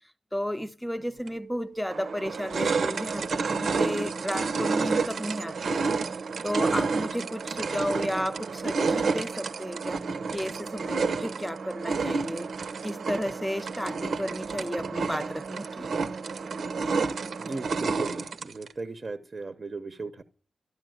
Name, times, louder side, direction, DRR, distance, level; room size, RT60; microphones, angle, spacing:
voice 1, 0.3-5.9 6.4-10.0 10.3-12.5 12.8-15.9, equal, 5° left, 0.7 m, -33 dB
sound 1, 1.3-1.4 1.9-18.7, right 4 dB, 85° right, 1.0 m, -30 dB
voice 2, 17.4-20.2, right 3 dB, 35° right, 0.9 m, -37 dB
13.5 x 9.6 x 7.8 m
wide cardioid pair, 155°, 0 cm